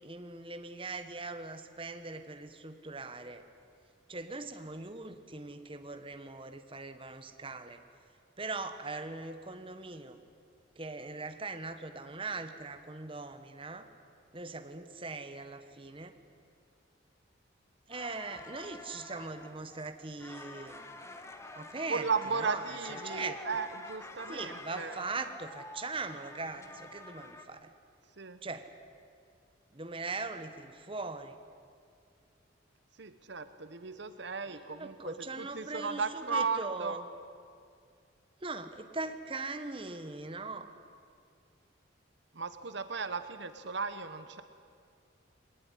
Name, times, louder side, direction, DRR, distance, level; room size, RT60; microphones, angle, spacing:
voice 1, 0.0-3.4 4.1-7.8 8.4-10.2 10.8-13.9 14.3-16.1 17.9-20.7 21.5-22.0 22.3-22.6 22.9-23.4 24.3-27.7 28.4-28.7 29.7-31.4 34.5-37.0 38.4-40.7, right 3 dB, 25° right, 8 dB, 1.2 m, -40 dB
sound 1, 17.9-27.5, left 2 dB, 15° left, 1.3 m, -48 dB
voice 2, 21.9-25.0 28.2-28.4 33.0-37.0 42.3-44.4, right 5 dB, 60° right, 10 dB, 1.0 m, -35 dB
21.5 x 18.5 x 9.9 m, 2.3 s
head